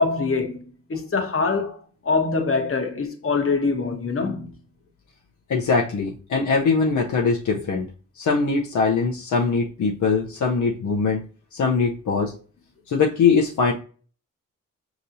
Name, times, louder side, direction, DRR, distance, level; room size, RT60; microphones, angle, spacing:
voice 1, 0.0-1.8 2.0-4.5, left 4 dB, 45° left, 1.1 m, -24 dB
voice 2, 5.5-7.9 8.2-11.2 11.5-12.3 12.9-13.7, left 4 dB, 65° left, 0.7 m, -22 dB
5.3 x 2.9 x 2.6 m
cardioid pair, 55°, 32 cm